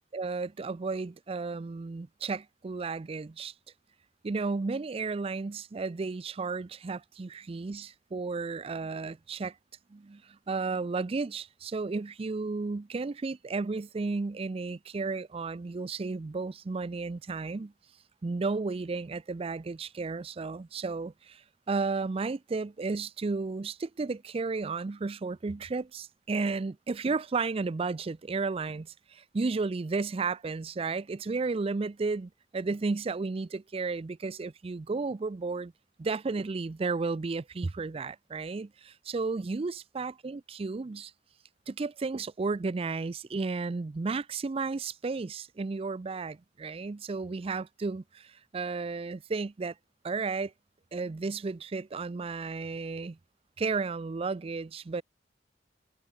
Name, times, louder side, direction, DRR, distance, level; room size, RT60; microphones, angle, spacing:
voice 1, 0.0-3.5 4.2-9.5 9.9-17.7 18.2-21.4 21.7-35.7 36.0-41.1 41.7-49.7 50.0-50.5 50.9-53.2 53.6-55.0, right 4 dB, 35° right, 0.4 m, -33 dB
head